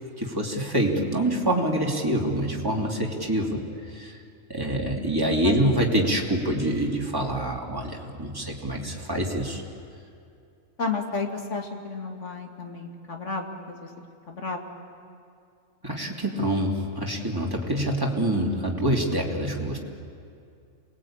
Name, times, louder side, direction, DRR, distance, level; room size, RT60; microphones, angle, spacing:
voice 1, 0.2-3.6 3.9-4.2 4.5-9.6 15.8-19.8, right 1 dB, 15° right, -1 dB, 2.8 m, -26 dB
voice 2, 10.8-13.9 14.3-14.6, left 4 dB, 60° left, 2 dB, 2.6 m, -32 dB
28.0 x 20.5 x 8.8 m, 2.5 s
omnidirectional pair, 1.5 m